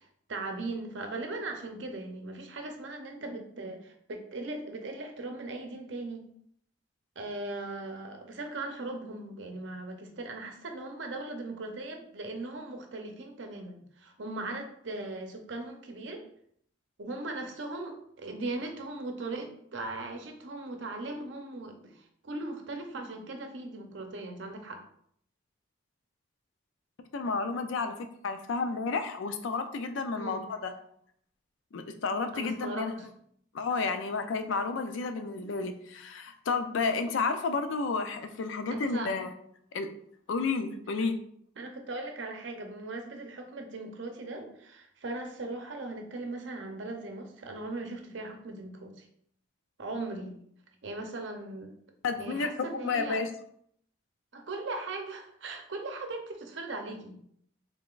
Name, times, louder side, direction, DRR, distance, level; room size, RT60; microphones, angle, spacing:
voice 1, 0.0-6.2 7.2-16.3 17.0-24.8 30.1-30.4 32.3-33.1 38.7-39.1 41.6-49.1 49.8-50.4 50.8-51.7 52.1-53.2 54.3-57.1, right 2 dB, 70° right, 4 dB, 0.6 m, -39 dB
voice 2, 27.1-27.9 28.2-30.7 31.7-32.9 33.5-39.3 39.7-39.9 40.3-41.1 52.0-53.3, left 4 dB, 80° left, 8 dB, 0.4 m, -31 dB
3.7 x 3.5 x 2.4 m, 0.67 s
head